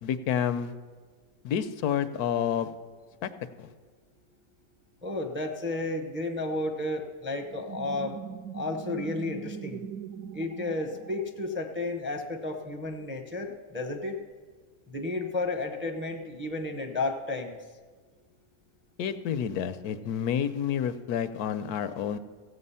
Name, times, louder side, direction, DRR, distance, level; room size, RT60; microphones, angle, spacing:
voice 1, 0.0-0.7 1.4-2.7 3.2-3.3 3.6-3.7 19.0-22.2, left 8 dB, 90° left, 12 dB, 1.2 m, -29 dB
voice 2, 5.0-8.2 8.5-9.8 10.3-14.2 14.9-17.6, left 2 dB, 15° right, 4 dB, 0.5 m, -32 dB
sound 1, 7.4-11.9, right 8 dB, 75° right, 1.1 m, -41 dB
15.0 x 8.0 x 5.5 m, 1.4 s
omnidirectional pair, 1.6 m